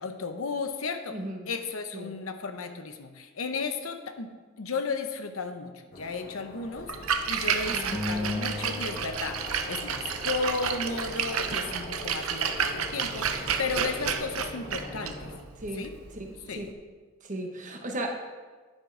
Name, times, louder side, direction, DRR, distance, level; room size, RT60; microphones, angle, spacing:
voice 1, 0.0-1.1 1.5-6.9 7.3-15.3 15.8-15.9 16.5-16.7, left 4 dB, 80° left, 8 dB, 0.8 m, -34 dB
voice 2, 1.1-1.5 1.9-2.2 7.7-7.9 15.5-16.7 17.2-18.1, right 1 dB, 35° right, 2 dB, 1.2 m, -36 dB
sound 1, 5.9-15.4, left 1 dB, 40° left, 1.3 m, -43 dB
Splash splatter, 6.8-16.7, right 7 dB, 85° right, 0.7 m, -31 dB
sound 2, 7.9-10.5, left 2 dB, 10° left, 0.8 m, -36 dB
10.0 x 6.3 x 4.8 m, 1.4 s
head